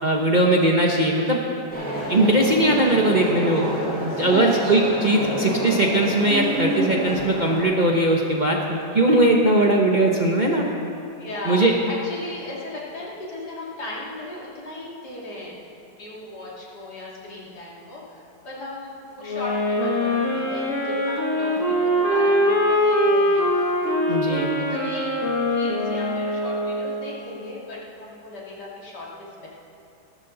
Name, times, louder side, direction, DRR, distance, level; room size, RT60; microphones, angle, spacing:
voice 1, 0.0-1.4 2.1-3.7 4.0-10.6 11.5-11.7 24.1-24.6, right 1 dB, 35° right, -1 dB, 0.9 m, -20 dB
sound 1, 1.7-7.6, equal, 5° left, 3.9 m, -27 dB
voice 2, 4.2-4.6 11.2-15.6 16.0-24.2 24.6-25.2 25.5-29.5, left 2 dB, 70° left, -5 dB, 3.1 m, -37 dB
sound 2, 19.2-27.1, left 1 dB, 45° left, 2.7 m, -22 dB
17.5 x 13.0 x 3.9 m, 2.8 s
omnidirectional pair, 1.8 m